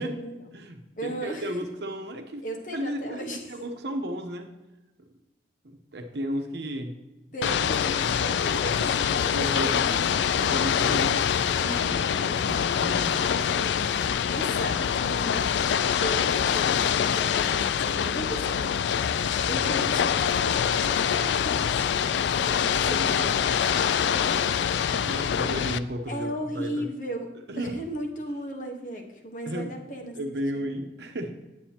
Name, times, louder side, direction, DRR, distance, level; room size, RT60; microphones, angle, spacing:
voice 1, 0.0-0.5 1.0-1.5 2.4-3.4 7.3-9.8 13.2-15.6 16.0-19.1 19.5-24.5 26.1-27.3 27.6-30.7, equal, 50° left, 2 dB, 1.2 m, -36 dB
voice 2, 0.5-2.4 2.7-4.5 5.0-5.1 5.6-6.9 7.4-7.5 7.9-8.1 8.8-10.1 10.4-11.2 11.6-13.3 22.7-23.3 25.0-26.3 26.5-26.9 27.5-27.8 29.5-29.7 30.1-31.3, right 1 dB, 70° right, 4 dB, 1.0 m, -34 dB
Ocean / Boat Water vehicle, 7.4-25.8, left 8 dB, 75° left, 0.3 m, -25 dB
9.0 x 8.3 x 2.9 m, 1.1 s
head